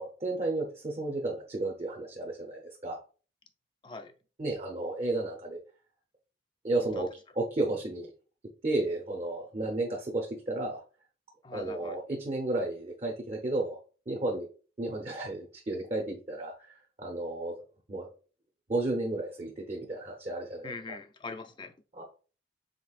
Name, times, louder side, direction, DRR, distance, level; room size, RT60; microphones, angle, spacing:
voice 1, 0.0-3.0 4.4-5.6 6.6-7.1 7.4-8.1 8.6-10.8 11.5-13.8 14.1-14.5 14.8-16.7 17.0-17.5 17.9-18.1 18.7-20.7 21.9-22.0, right 2 dB, 35° right, 0 dB, 0.7 m, -32 dB
voice 2, 3.8-4.1 7.0-7.1 11.4-12.0 20.6-21.7, left 4 dB, 25° left, 7 dB, 0.4 m, -42 dB
5.1 x 3.4 x 2.4 m, 0.37 s
head